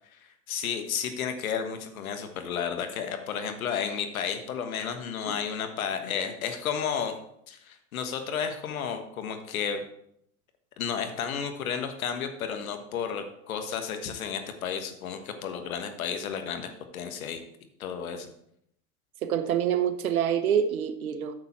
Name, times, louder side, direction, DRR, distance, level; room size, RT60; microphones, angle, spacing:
voice 1, 0.5-7.1 7.5-9.8 10.8-17.4 17.8-18.3, left 7 dB, 75° left, 7 dB, 1.4 m, -32 dB
voice 2, 19.2-21.3, right 9 dB, 80° right, 10 dB, 1.0 m, -26 dB
9.1 x 6.7 x 4.3 m, 0.73 s
hypercardioid pair, 95°, 42 cm